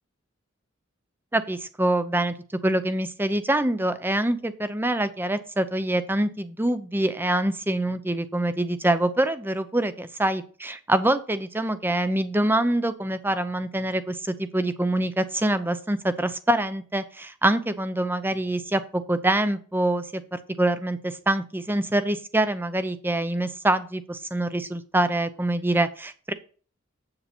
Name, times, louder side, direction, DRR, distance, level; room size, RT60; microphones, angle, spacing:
voice 1, 1.3-2.3 2.6-26.3, right 1 dB, 10° right, 12 dB, 0.6 m, -25 dB
8.2 x 6.9 x 4.4 m, 0.40 s
head